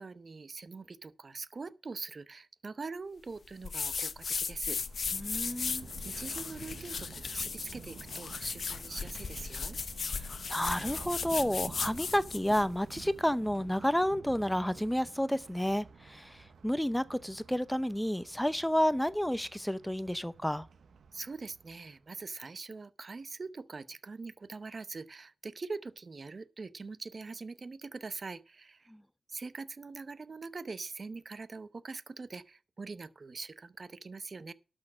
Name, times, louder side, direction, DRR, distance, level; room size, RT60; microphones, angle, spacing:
voice 1, 0.0-4.8 6.0-9.8 21.1-28.9 29.3-34.5, right 4 dB, 40° right, 0.7 m, -43 dB
sound 1, 3.6-12.7, left 5 dB, 55° left, 0.9 m, -36 dB
Thunder, 4.7-22.1, right 5 dB, 70° right, 0.9 m, -51 dB
voice 2, 5.1-5.9 10.1-20.7 28.9-29.0, equal, 5° left, 0.6 m, -31 dB
12.0 x 6.3 x 6.2 m
wide cardioid pair, 105°, 0 cm